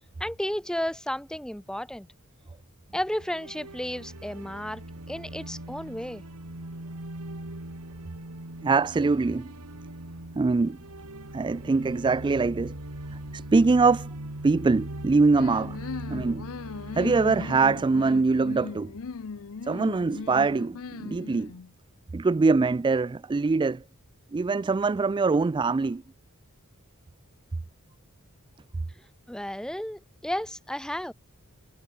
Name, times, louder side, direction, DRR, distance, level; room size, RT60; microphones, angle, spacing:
voice 1, 0.2-2.1 2.9-4.8 5.1-6.2 29.3-31.1, equal, 5° left, 1.1 m, -33 dB
sound 1, 3.1-19.2, right 1 dB, 85° right, 2.9 m, -40 dB
voice 2, 8.6-9.5 10.4-10.8 11.3-12.7 13.3-14.1 14.4-15.8 16.1-16.5 16.9-18.9 19.6-21.5 22.1-23.8 24.3-26.0, right 4 dB, 20° right, 0.3 m, -23 dB
sound 2, 15.3-21.7, left 5 dB, 65° left, 0.6 m, -38 dB
head